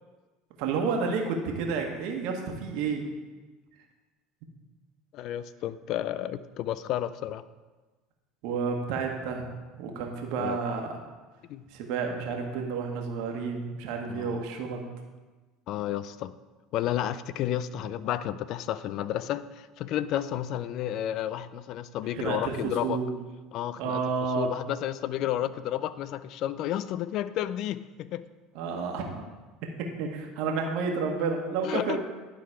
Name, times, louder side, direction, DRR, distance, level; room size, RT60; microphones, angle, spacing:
voice 1, 0.6-3.1 8.4-9.5 9.8-11.0 11.7-14.8 22.1-23.1 23.8-24.5 28.5-29.2 29.8-32.0, right 5 dB, 70° right, 2 dB, 1.3 m, -30 dB
voice 2, 5.1-7.4 10.4-10.6 11.5-11.6 14.1-14.4 15.7-16.3 16.7-23.0 23.5-24.0 24.4-28.2 31.6-32.0, left 12 dB, 60° left, 16 dB, 0.4 m, -31 dB
11.0 x 3.9 x 4.8 m, 1.3 s
hypercardioid pair, 90°, 0 cm